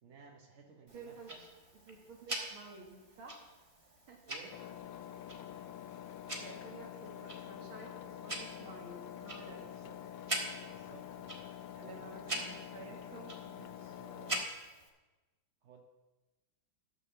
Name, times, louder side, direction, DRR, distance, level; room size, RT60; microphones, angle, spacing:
voice 1, 0.0-1.4 4.2-4.6 9.5-10.0 10.6-11.4 11.7-13.0 13.5-14.4 15.6-15.8, right 4 dB, 55° right, 2 dB, 0.7 m, -56 dB
Tick-tock, 0.9-14.9, right 1 dB, 20° right, 1.1 m, -45 dB
voice 2, 0.9-1.5 1.9-3.4 4.1-4.2 6.3-9.6 11.8-13.7, right 3 dB, 80° right, 0 dB, 2.7 m, -52 dB
Engine, 4.5-14.5, left 10 dB, 70° left, 1.2 m, -47 dB
12.5 x 6.3 x 6.7 m, 1.2 s
omnidirectional pair, 2.3 m